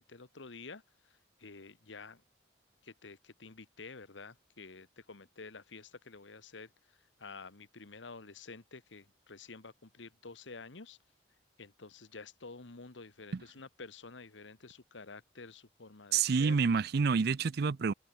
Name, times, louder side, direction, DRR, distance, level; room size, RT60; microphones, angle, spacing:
voice 1, 0.0-2.2 2.8-11.0 11.6-16.6, left 4 dB, 80° left, 1.4 m, -50 dB
voice 2, 16.1-17.9, right 5 dB, 55° right, 0.5 m, -28 dB
head